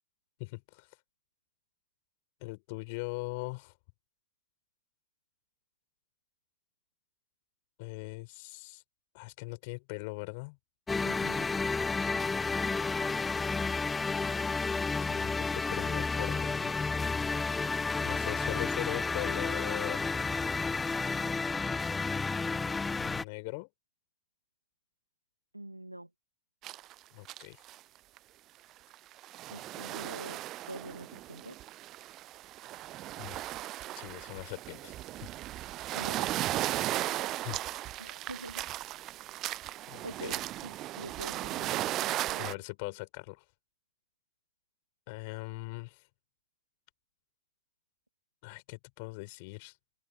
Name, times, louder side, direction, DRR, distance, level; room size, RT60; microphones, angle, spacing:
voice 1, 0.4-0.9 2.4-3.7 7.8-8.8 9.1-10.6 14.0-14.1 15.1-16.8 18.0-20.1 23.0-23.7 27.1-27.6 33.2-33.4 34.0-34.9 35.2-35.3 37.4-37.6 39.9-40.3 42.4-43.4 45.1-46.0 48.4-49.7, left 29 dB, 45° left, 7.2 m, -40 dB
sound 1, 10.9-23.2, left 4 dB, 10° left, 0.5 m, -31 dB
voice 2, 11.0-11.5 25.5-26.1 29.5-31.6 38.0-38.7 40.0-42.6, right 1 dB, 85° right, 2.3 m, -46 dB
sound 2, 26.6-26.9 27.2-27.8 28.2-28.3 28.9-42.5, right 15 dB, 35° right, 0.6 m, -36 dB
figure-of-eight pair, 90°, 0 cm